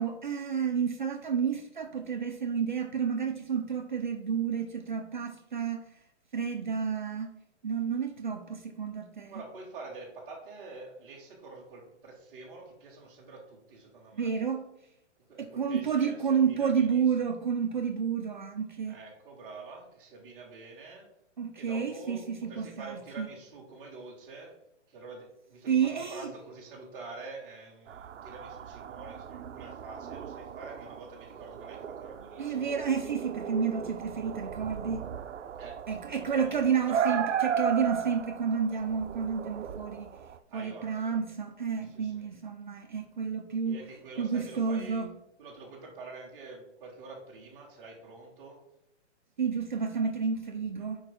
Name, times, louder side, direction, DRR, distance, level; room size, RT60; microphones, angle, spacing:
voice 1, 0.0-6.0 6.3-7.3 7.6-9.3 14.1-14.7 15.4-19.0 21.4-23.3 25.7-26.3 32.4-35.1 35.9-40.1 40.5-43.8 44.2-45.1 49.4-51.0, right 6 dB, 40° right, 5 dB, 0.5 m, -30 dB
voice 2, 9.3-14.3 15.3-17.3 18.9-21.1 21.5-24.6 24.9-32.7 35.6-37.0 37.3-37.6 40.5-41.2 41.9-42.2 43.6-45.1 45.4-48.6, right 3 dB, 5° right, -7 dB, 0.7 m, -47 dB
sound 1, 27.9-40.4, right 8 dB, 80° right, 0.7 m, -36 dB
4.9 x 4.7 x 5.9 m, 0.78 s
hypercardioid pair, 180°, 36 cm